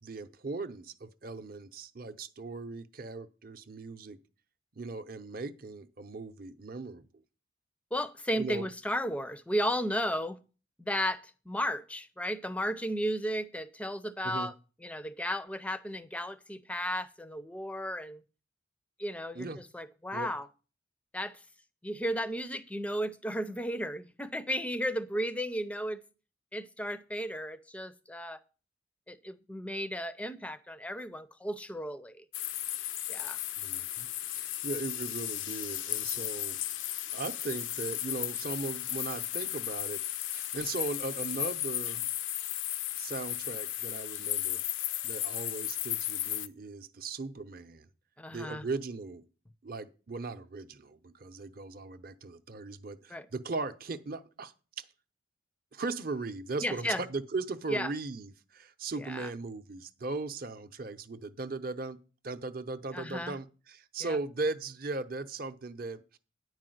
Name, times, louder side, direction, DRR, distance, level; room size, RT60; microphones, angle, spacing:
voice 1, 0.0-4.2 4.8-7.0 8.4-8.7 14.2-14.5 19.3-19.6 20.1-20.3 33.6-34.1 34.3-36.6 37.1-40.0 40.3-42.1 43.0-44.6 45.0-47.9 48.3-49.2 49.6-54.9 55.7-62.0 62.2-66.2, right 3 dB, 45° right, 0.7 m, -38 dB
voice 2, 7.9-10.4 10.8-14.5 14.8-18.2 19.0-19.5 19.7-20.5 21.1-21.4 21.8-26.0 26.5-28.4 29.1-32.2 33.1-33.4 48.2-48.6 53.1-53.3 56.6-57.0 57.7-57.9 59.0-59.3 62.9-63.3 64.0-64.2, equal, 5° left, 0.5 m, -34 dB
sound 1, 32.3-46.5, left 13 dB, 80° left, 0.5 m, -35 dB
9.9 x 4.8 x 7.7 m
head